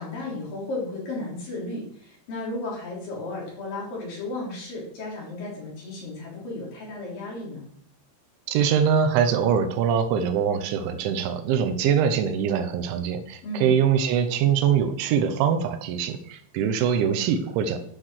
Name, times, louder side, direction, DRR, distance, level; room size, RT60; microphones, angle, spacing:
voice 1, 0.0-7.7 13.4-13.7, left 2 dB, 50° left, -4 dB, 5.2 m, -34 dB
voice 2, 8.5-17.8, right 7 dB, 85° right, 8 dB, 3.3 m, -23 dB
10.5 x 6.0 x 6.4 m, 0.63 s
omnidirectional pair, 5.3 m